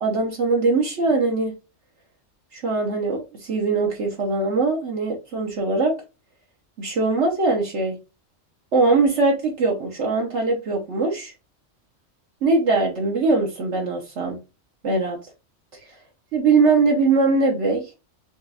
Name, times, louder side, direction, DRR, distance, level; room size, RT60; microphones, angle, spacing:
voice 1, 0.0-1.5 2.5-5.9 6.8-8.0 8.7-11.3 12.4-14.4 14.8-15.2 16.3-17.9, right 3 dB, 70° right, 1.3 m, -21 dB
5.2 x 3.1 x 2.4 m
omnidirectional pair, 1.3 m